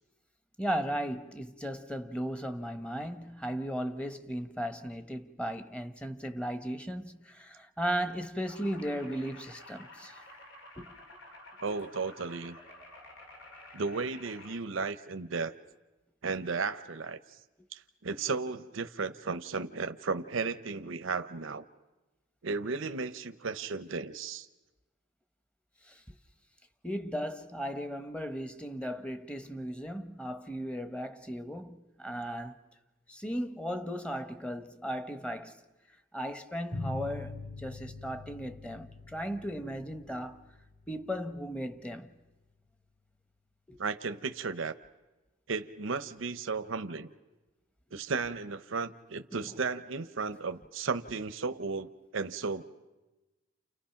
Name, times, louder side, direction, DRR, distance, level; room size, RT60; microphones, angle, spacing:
voice 1, 0.6-10.2 10.8-11.0 25.9-26.0 26.8-32.6 33.1-35.6 36.1-40.4 40.9-42.1 43.7-43.8 49.3-49.5, equal, 5° left, 1.0 m, -36 dB
sound 1, 8.5-14.6, left 2 dB, 85° left, 3.6 m, -51 dB
voice 2, 11.6-12.6 13.7-15.5 16.2-17.2 17.7-21.6 22.4-24.5 43.8-44.7 45.5-47.1 47.9-52.6, right 4 dB, 85° right, 0.8 m, -34 dB
sound 2, 36.7-41.8, left 3 dB, 60° left, 7.7 m, -44 dB
29.5 x 29.5 x 5.8 m
head